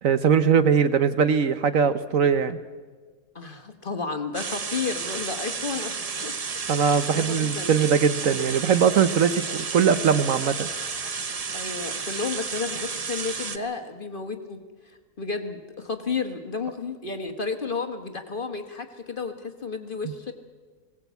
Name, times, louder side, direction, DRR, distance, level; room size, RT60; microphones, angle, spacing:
voice 1, 0.0-2.6 6.7-10.7, right 7 dB, 60° right, 11 dB, 1.1 m, -21 dB
voice 2, 3.3-7.8 11.5-20.3, left 4 dB, 35° left, 6 dB, 1.3 m, -32 dB
sound 1, 4.3-13.6, right 5 dB, 35° right, 0.6 m, -32 dB
20.0 x 17.5 x 8.1 m, 1.5 s
omnidirectional pair, 1.7 m